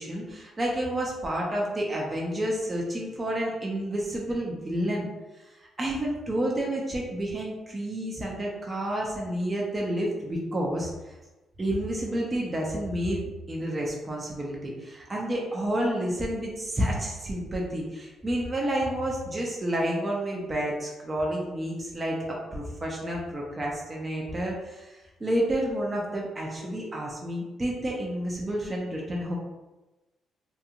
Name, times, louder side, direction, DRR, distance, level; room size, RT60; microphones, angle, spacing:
voice 1, 0.0-5.1 5.3-11.2 11.6-29.3, right 1 dB, 25° right, -3 dB, 0.5 m, -30 dB
2.8 x 2.5 x 2.4 m, 1.1 s
cardioid pair, 90°, 0 cm